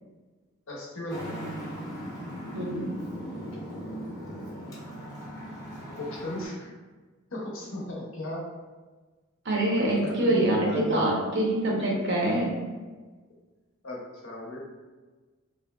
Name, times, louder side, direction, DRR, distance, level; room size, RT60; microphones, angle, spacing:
voice 1, 0.7-1.4 6.0-6.7 7.3-8.5 9.8-11.1 13.8-14.6, left 1 dB, 75° left, -3 dB, 0.7 m, -35 dB
Traffic noise roadway noise, 1.1-6.5, equal, 15° left, 0.7 m, -38 dB
voice 2, 2.5-2.9 9.4-12.5, right 1 dB, 60° right, -2 dB, 0.6 m, -25 dB
3.1 x 2.5 x 2.2 m, 1.3 s
head